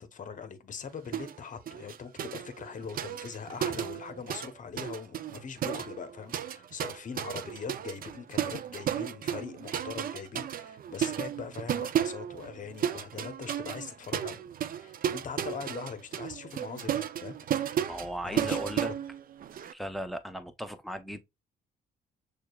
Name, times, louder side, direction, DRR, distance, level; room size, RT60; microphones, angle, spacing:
voice 1, 0.0-14.5 14.7-17.7 18.2-18.9, left 6 dB, 40° left, 0.8 m, -42 dB
sound 1, 1.1-1.4 1.7-4.5 4.8-19.7, right 10 dB, 45° right, 0.4 m, -34 dB
voice 2, 17.9-18.9 19.7-21.2, equal, ahead, 0.6 m, -36 dB
6.4 x 2.4 x 2.3 m
cardioid pair, 90°, 20 cm